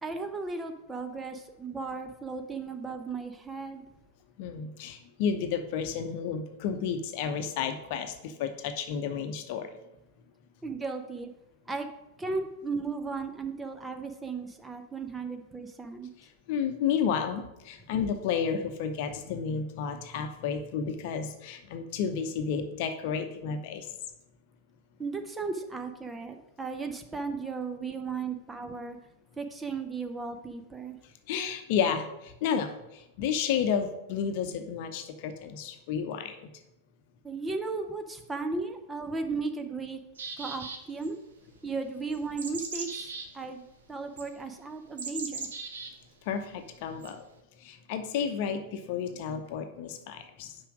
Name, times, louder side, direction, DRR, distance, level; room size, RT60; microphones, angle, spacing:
voice 1, 0.0-3.9 10.6-11.3 11.7-11.9 12.2-16.1 25.0-29.0 29.4-31.0 37.2-40.0 40.4-41.2 41.6-43.6 43.9-45.5, right 4 dB, 10° right, 6 dB, 0.7 m, -35 dB
voice 2, 4.4-9.8 16.5-23.9 31.3-36.5 46.2-47.2 47.6-50.6, left 7 dB, 50° left, 7 dB, 0.8 m, -31 dB
sound 1, 40.2-41.1 42.1-43.3 44.2-44.3 45.0-45.9 47.0-47.1, right 4 dB, 65° right, 1.0 m, -38 dB
5.8 x 4.9 x 6.2 m, 0.88 s
figure-of-eight pair, 90°, 0 cm